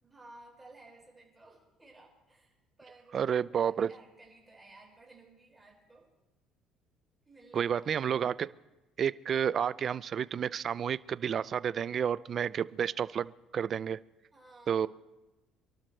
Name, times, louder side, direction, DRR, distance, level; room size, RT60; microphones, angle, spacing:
voice 1, 0.0-2.5 2.8-6.1 7.3-7.9 14.3-14.9, right 2 dB, 10° right, -2 dB, 5.3 m, -56 dB
voice 2, 3.1-3.9 7.5-8.5 9.0-14.0 14.7-14.9, right 8 dB, 40° right, 18 dB, 0.4 m, -30 dB
27.5 x 12.5 x 3.2 m, 1.0 s
cardioid pair, 125°, 0 cm